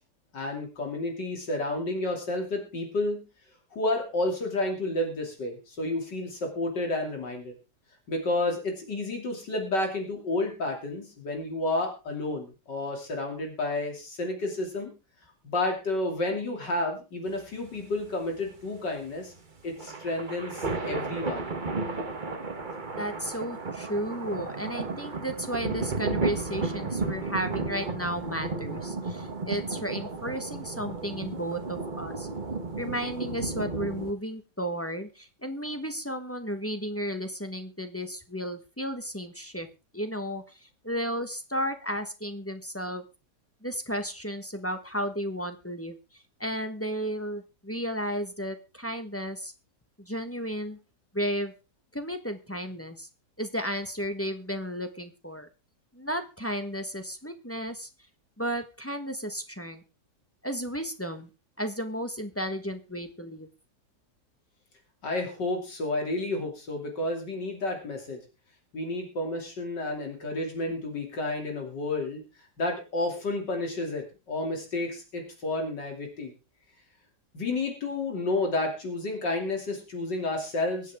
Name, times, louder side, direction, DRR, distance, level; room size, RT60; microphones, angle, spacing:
voice 1, 0.3-3.2 3.7-7.5 8.1-14.9 15.4-19.3 19.6-21.4 65.0-68.2 68.7-72.2 72.6-76.3 77.3-81.0, left 2 dB, 75° left, 2 dB, 3.4 m, -31 dB
sound 1, 17.3-34.1, right 3 dB, 30° right, 1.4 m, -33 dB
voice 2, 23.0-32.3 32.7-39.7 39.9-43.0 43.6-46.0 46.4-49.5 50.0-50.8 51.1-51.6 51.9-53.1 53.4-55.5 55.9-57.9 58.4-59.8 60.4-61.3 61.6-63.5, equal, 10° left, 7 dB, 1.0 m, -33 dB
23.5 x 8.4 x 3.6 m, 0.31 s
omnidirectional pair, 1.9 m